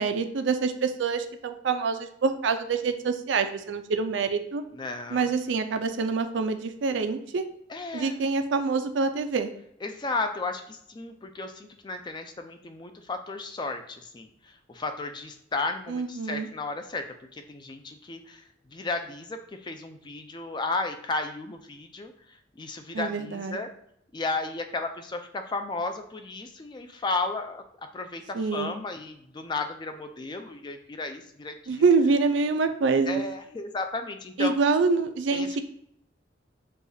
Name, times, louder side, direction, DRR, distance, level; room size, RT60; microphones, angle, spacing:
voice 1, 0.0-4.6 5.1-7.5 7.9-9.5 15.9-16.5 22.9-23.6 28.3-28.7 31.7-33.3 34.4-35.6, right 4 dB, 70° right, 8 dB, 0.4 m, -26 dB
voice 2, 4.7-5.4 7.7-8.2 9.8-17.1 17.3-23.7 24.1-27.6 27.9-31.8 33.0-34.6 35.3-35.6, left 3 dB, 25° left, 6 dB, 0.4 m, -34 dB
6.5 x 2.3 x 2.7 m, 0.71 s
head